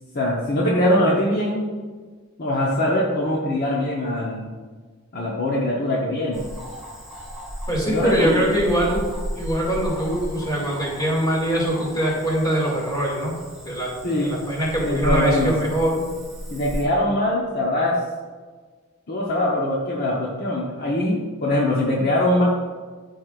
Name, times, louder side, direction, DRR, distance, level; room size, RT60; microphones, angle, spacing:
voice 1, 0.1-1.7 2.4-4.5 5.1-6.4 7.9-8.4 14.0-14.4 14.8-15.7 16.5-18.0 19.1-22.4, left 1 dB, 45° left, -3 dB, 1.0 m, -22 dB
Cricket / Frog, 6.3-16.8, equal, ahead, 2.3 m, -34 dB
voice 2, 7.7-9.1 9.4-13.4 13.6-16.1, right 1 dB, 20° left, -4 dB, 2.3 m, -23 dB
13.5 x 4.7 x 2.5 m, 1.5 s
head